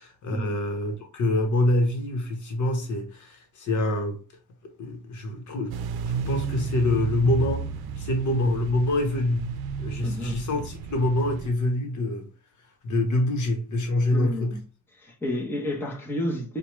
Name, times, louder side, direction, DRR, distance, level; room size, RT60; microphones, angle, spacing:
voice 1, 0.2-4.2 4.8-5.7 6.0-7.7 8.0-9.4 9.8-12.3 12.8-14.5, left 1 dB, 50° left, 1.0 m, -25 dB
sound 1, 5.7-11.5, right 6 dB, 80° right, 0.6 m, -33 dB
voice 2, 10.0-10.4 14.1-14.6 14.9-16.6, left 1 dB, 5° left, 0.7 m, -30 dB
4.7 x 2.3 x 3.0 m
wide cardioid pair, 165°, 37 cm